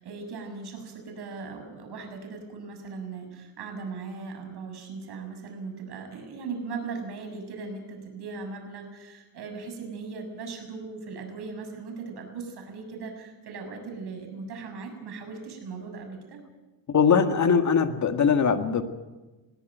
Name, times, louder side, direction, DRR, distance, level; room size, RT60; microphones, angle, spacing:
voice 1, 0.0-16.4, right 4 dB, 55° right, 5 dB, 6.9 m, -38 dB
voice 2, 16.9-18.8, left 6 dB, 35° left, 8 dB, 1.9 m, -21 dB
20.5 x 17.0 x 9.2 m, 1.2 s
supercardioid pair, 95°, 47 cm